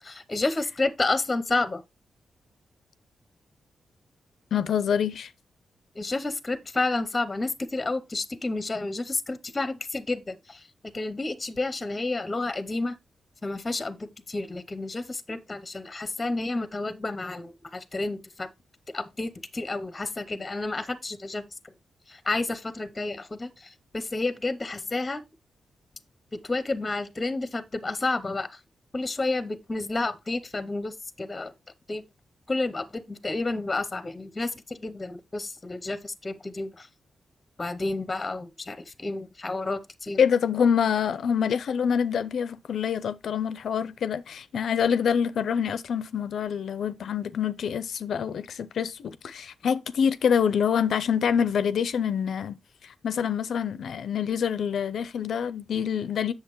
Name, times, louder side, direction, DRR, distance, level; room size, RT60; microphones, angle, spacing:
voice 1, 0.0-1.8 5.9-13.0 13.4-18.5 18.9-21.7 22.1-25.2 26.3-28.6 28.9-31.5 31.9-32.1 32.5-36.9 37.6-40.2, left 2 dB, 20° left, 0.7 m, -30 dB
voice 2, 4.5-5.3 40.2-52.6 52.8-56.3, left 7 dB, 75° left, 0.5 m, -26 dB
8.0 x 6.8 x 3.0 m
cardioid pair, 110°, 0 cm